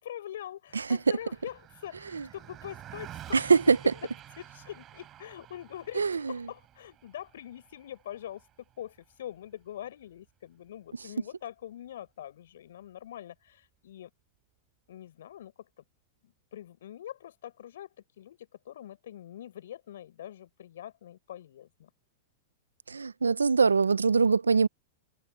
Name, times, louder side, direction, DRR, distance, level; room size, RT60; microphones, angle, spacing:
voice 1, 0.0-4.1 4.4-14.1 14.9-15.7 16.2-21.9, left 11 dB, 70° left, 6.7 m, -44 dB
Car passing by, 0.7-10.3, right 12 dB, 30° right, 6.7 m, -50 dB
voice 2, 3.3-3.8 6.0-6.4 22.9-24.7, right 5 dB, 85° right, 0.9 m, -23 dB
hypercardioid pair, 105°, 0 cm